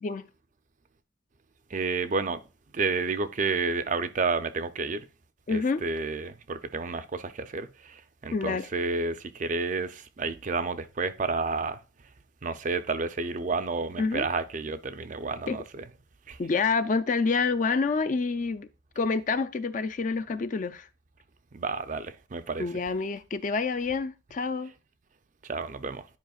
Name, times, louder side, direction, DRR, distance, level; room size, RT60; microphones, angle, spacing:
voice 1, 1.7-2.4 2.7-5.1 5.5-11.8 12.4-15.8 16.3-16.4 21.5-22.7 25.4-26.1, right 4 dB, 40° right, 0.5 m, -30 dB
voice 2, 5.5-5.8 8.3-8.7 14.0-14.3 15.5-15.6 16.4-18.7 19.0-20.9 22.6-24.7, left 4 dB, 40° left, 0.4 m, -27 dB
10.5 x 4.9 x 2.3 m
head